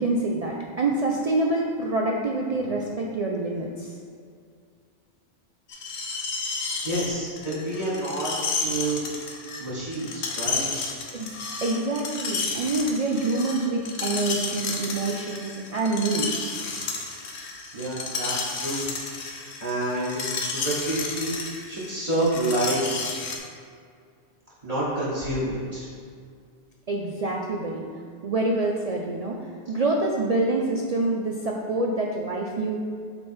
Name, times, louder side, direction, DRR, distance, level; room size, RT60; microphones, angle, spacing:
voice 1, 0.0-4.0 11.1-11.3 11.6-16.3 26.9-27.9 28.2-29.4 29.7-32.7, right 2 dB, 50° right, -1 dB, 0.4 m, -26 dB
Screech, 5.7-23.4, left 4 dB, 80° left, 1.1 m, -32 dB
voice 2, 6.8-8.3 8.6-9.1 9.6-10.9 17.7-18.8 19.4-21.4 21.7-23.0 24.6-25.9, right 1 dB, 35° right, -8 dB, 1.4 m, -28 dB
7.1 x 3.3 x 4.3 m, 2.2 s
omnidirectional pair, 1.1 m